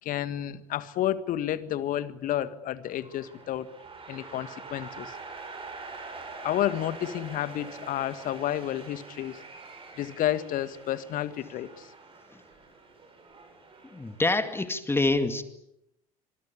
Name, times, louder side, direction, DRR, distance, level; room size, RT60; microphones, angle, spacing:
voice 1, 0.0-3.7 4.1-5.2 6.4-9.4 10.0-11.9, left 12 dB, 45° left, 14 dB, 1.7 m, -31 dB
sound 1, 2.8-14.4, right 4 dB, 30° right, 7.2 m, -45 dB
voice 2, 13.9-15.4, left 2 dB, 10° left, 10 dB, 2.2 m, -26 dB
25.5 x 23.0 x 8.5 m, 0.83 s
figure-of-eight pair, 65°, 19 cm